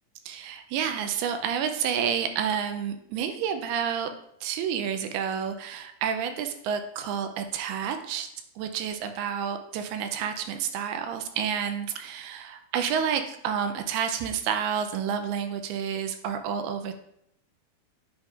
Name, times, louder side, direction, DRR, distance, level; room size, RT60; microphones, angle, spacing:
voice 1, 0.3-4.1 4.4-8.3 8.6-16.9, right 8 dB, 80° right, 7 dB, 2.4 m, -29 dB
9.0 x 5.0 x 2.4 m, 0.73 s
omnidirectional pair, 4.8 m